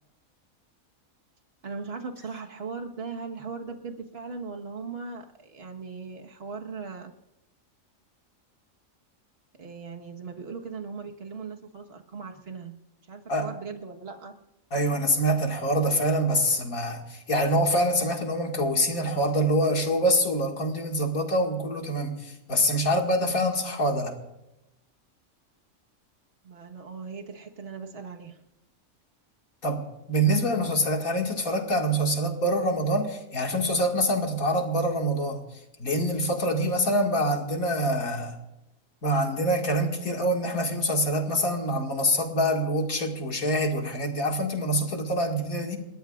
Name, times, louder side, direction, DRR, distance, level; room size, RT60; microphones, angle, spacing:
voice 1, 1.6-7.1 9.6-12.7 13.1-14.3 26.4-28.4, right 5 dB, 45° right, 3 dB, 1.7 m, -38 dB
voice 2, 14.7-24.1 29.6-35.4 35.8-38.3 39.0-45.8, equal, 85° left, 2 dB, 2.6 m, -25 dB
29.0 x 13.5 x 2.5 m, 0.95 s
omnidirectional pair, 1.4 m